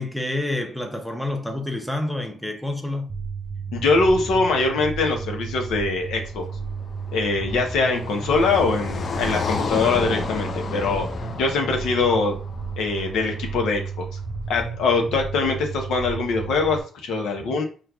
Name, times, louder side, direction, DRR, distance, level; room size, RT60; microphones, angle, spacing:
voice 1, 0.0-3.1, left 1 dB, 5° left, 0.6 m, -28 dB
sound 1, 3.1-16.8, right 5 dB, 45° right, 0.3 m, -33 dB
voice 2, 3.7-6.4 7.1-11.1 11.4-12.3 12.8-14.1 14.5-17.6, left 3 dB, 75° left, 0.8 m, -23 dB
Car passing by, 6.3-13.5, left 5 dB, 45° left, 0.4 m, -32 dB
4.5 x 2.3 x 2.3 m
supercardioid pair, 75°, 0 cm